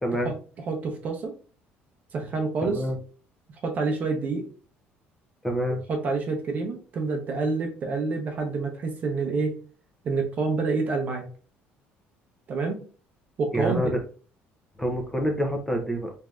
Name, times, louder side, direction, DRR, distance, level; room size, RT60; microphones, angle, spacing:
voice 1, 0.0-0.3 2.6-3.0 5.4-5.8 13.5-14.0 14.8-16.1, equal, 10° left, 3 dB, 0.5 m, -27 dB
voice 2, 0.7-1.3 2.1-2.8 3.6-4.4 5.9-9.6 10.0-11.2 12.5-12.8 13.4-13.9, right 4 dB, 40° right, 4 dB, 0.7 m, -27 dB
3.2 x 2.6 x 2.3 m, 0.39 s
cardioid pair, 150°, 4 cm